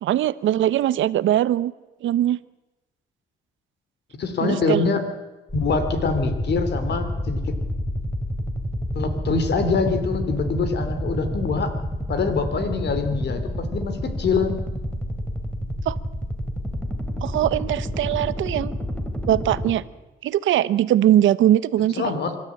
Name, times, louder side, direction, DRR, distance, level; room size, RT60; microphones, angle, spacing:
voice 1, 0.0-1.7 2.0-2.4 4.4-4.8 15.9-16.0 17.2-18.7 19.3-19.8 20.2-22.0, right 12 dB, 75° right, 17 dB, 0.8 m, -21 dB
voice 2, 4.2-5.1 5.5-7.6 8.9-11.7 12.1-14.7 22.0-22.4, left 4 dB, 60° left, 9 dB, 3.4 m, -24 dB
sound 1, 5.5-19.7, equal, 5° left, 3.1 m, -29 dB
25.0 x 13.0 x 8.5 m, 1.1 s
cardioid pair, 90°, 20 cm